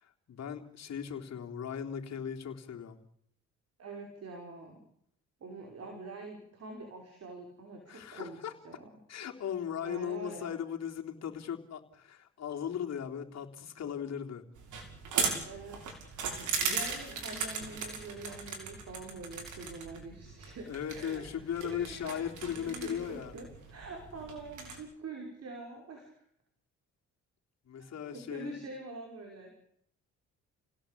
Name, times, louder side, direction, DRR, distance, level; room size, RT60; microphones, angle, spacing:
voice 1, 0.0-3.0 7.9-8.5 9.1-14.4 20.7-23.3 27.7-28.6, left 8 dB, 60° left, 2 dB, 3.7 m, -38 dB
voice 2, 3.8-4.8 5.4-8.4 8.6-8.8 9.8-10.5 15.4-15.8 16.2-26.2 27.8-29.6, right 3 dB, 55° right, 2 dB, 6.1 m, -45 dB
sound 1, 14.6-24.8, right 5 dB, 80° right, 6.5 m, -38 dB
29.5 x 17.5 x 8.7 m, 0.71 s
cardioid pair, 90°, 30 cm